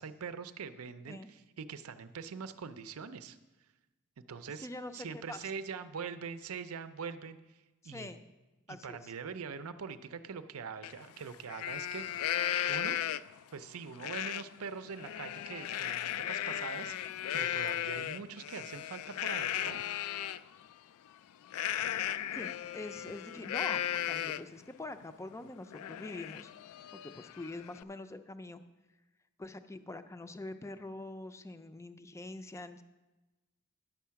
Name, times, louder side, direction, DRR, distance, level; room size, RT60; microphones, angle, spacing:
voice 1, 0.0-3.4 4.2-4.7 4.9-8.1 8.7-12.4 12.6-13.0 13.5-20.0, right 5 dB, 80° right, 12 dB, 0.5 m, -43 dB
voice 2, 4.6-5.4 7.8-8.2 8.7-9.1 22.3-26.5 27.0-28.6 29.4-32.8, left 2 dB, 15° left, 10 dB, 0.4 m, -44 dB
Livestock farm animals working animals, 10.8-10.9 11.3-13.4 14.0-14.4 14.8-20.4 21.5-24.6 25.0-25.1 25.5-27.8, left 11 dB, 80° left, 0.3 m, -36 dB
10.0 x 7.3 x 5.7 m, 1.1 s
head